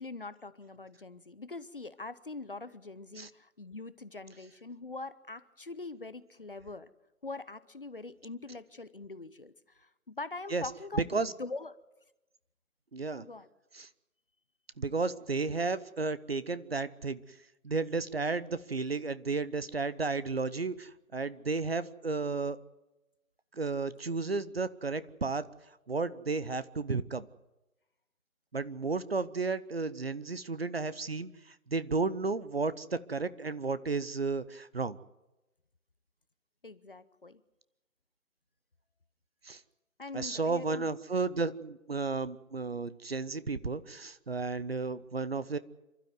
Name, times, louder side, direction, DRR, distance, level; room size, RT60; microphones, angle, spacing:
voice 1, 0.0-6.9 7.2-11.8 13.2-13.5 36.6-37.4 40.0-40.9, left 3 dB, 40° left, 15 dB, 0.7 m, -43 dB
voice 2, 12.9-13.2 13.7-13.9 14.8-17.2 17.6-22.6 23.5-25.4 25.9-27.3 28.5-31.3 31.7-35.0 39.4-39.6 40.1-45.6, right 4 dB, 45° right, 16 dB, 0.8 m, -33 dB
27.5 x 12.5 x 9.5 m, 0.99 s
figure-of-eight pair, 170°, 42 cm